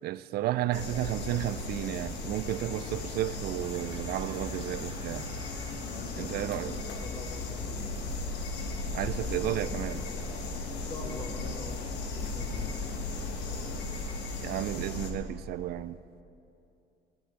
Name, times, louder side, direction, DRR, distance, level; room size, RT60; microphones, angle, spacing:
voice 1, 0.0-5.3 6.2-6.8 8.9-10.0 14.4-16.0, right 14 dB, 70° right, 0.4 m, -32 dB
voice 2, 0.6-1.0 5.9-6.7 7.0-8.1 10.7-13.0, left 1 dB, 50° left, 2.1 m, -44 dB
sound 1, 0.7-15.1, left 3 dB, 85° left, 1.4 m, -36 dB
sound 2, 2.0-13.1, right 3 dB, 30° right, 1.9 m, -51 dB
13.5 x 5.9 x 9.4 m
cardioid pair, 110°, 17 cm